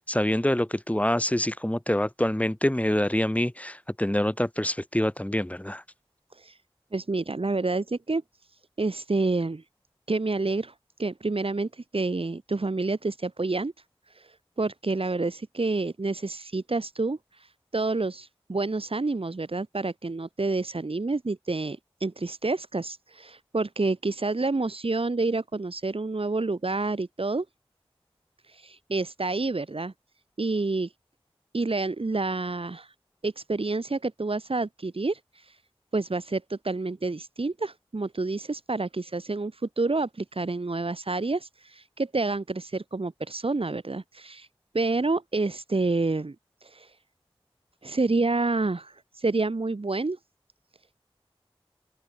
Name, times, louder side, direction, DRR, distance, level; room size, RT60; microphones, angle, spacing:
voice 1, 0.1-5.8, left 1 dB, 15° left, 2.9 m, -26 dB
voice 2, 6.9-8.2 8.8-9.6 10.1-10.7 11.0-13.7 14.1-27.5 28.5-29.9 30.4-30.9 31.5-32.9 33.2-35.5 35.9-44.5 44.7-46.4 46.6-46.9 47.8-50.2, right 3 dB, 65° right, 2.6 m, -28 dB
wide cardioid pair, 60°, 10 cm